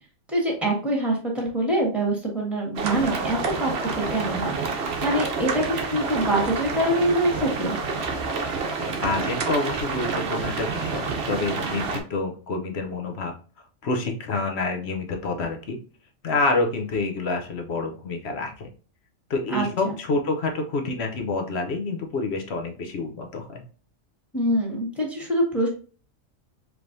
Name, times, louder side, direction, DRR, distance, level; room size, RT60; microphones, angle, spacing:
voice 1, 0.3-4.7 5.0-7.8 19.5-19.9 24.3-25.7, right 1 dB, ahead, -2 dB, 1.5 m, -25 dB
sound 1, 2.8-12.0, right 4 dB, 55° right, 1.0 m, -28 dB
voice 2, 9.0-13.3 13.8-15.8 16.2-18.7 19.3-23.6, left 3 dB, 60° left, 4 dB, 0.9 m, -27 dB
4.6 x 3.3 x 2.6 m, 0.39 s
omnidirectional pair, 1.3 m